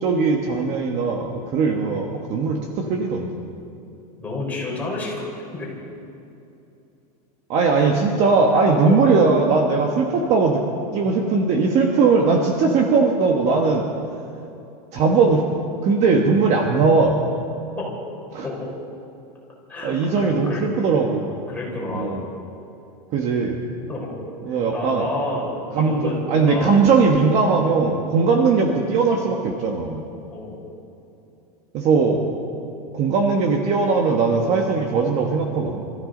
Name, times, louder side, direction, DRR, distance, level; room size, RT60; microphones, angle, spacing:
voice 1, 0.0-3.3 7.5-10.6 10.9-13.9 14.9-15.4 15.8-17.2 18.3-18.4 19.8-21.3 21.9-22.2 23.1-23.6 24.5-25.1 25.7-26.0 26.3-30.0 31.7-32.2 32.9-35.8, right 4 dB, 35° right, 2 dB, 1.3 m, -19 dB
voice 2, 4.2-5.3 5.5-5.7 7.8-7.9 8.5-9.0 17.8-17.9 18.4-18.7 19.7-20.6 21.2-22.2 23.9-24.2 24.7-26.8 30.3-30.6, left 2 dB, 10° left, -5 dB, 4.2 m, -30 dB
26.5 x 14.0 x 3.9 m, 2.8 s
supercardioid pair, 165°, 20 cm